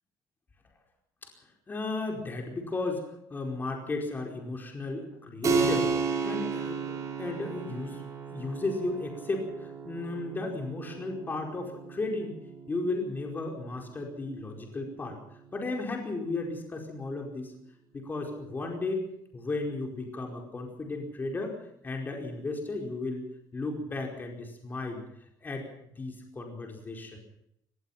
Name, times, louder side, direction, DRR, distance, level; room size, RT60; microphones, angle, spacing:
voice 1, 1.7-3.0 3.3-12.4 12.7-15.2 15.5-17.5 17.9-19.0 19.3-21.5 21.8-23.3 23.5-25.0 25.4-25.7 26.0-27.2, left 2 dB, 25° left, 2 dB, 4.8 m, -34 dB
Keyboard (musical), 5.4-15.6, right 5 dB, 40° right, 5.3 m, -34 dB
23.0 x 19.5 x 5.9 m, 0.76 s
cardioid pair, 130°, 8 cm